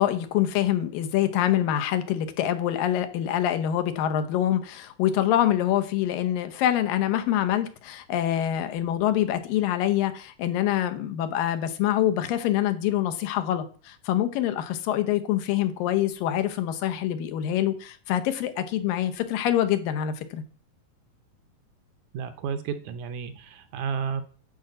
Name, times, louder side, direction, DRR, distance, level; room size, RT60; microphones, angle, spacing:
voice 1, 0.0-20.4, left 11 dB, 90° left, 2.7 m, -25 dB
voice 2, 22.1-24.2, right 6 dB, 75° right, 1.9 m, -32 dB
10.0 x 4.9 x 7.8 m
omnidirectional pair, 3.9 m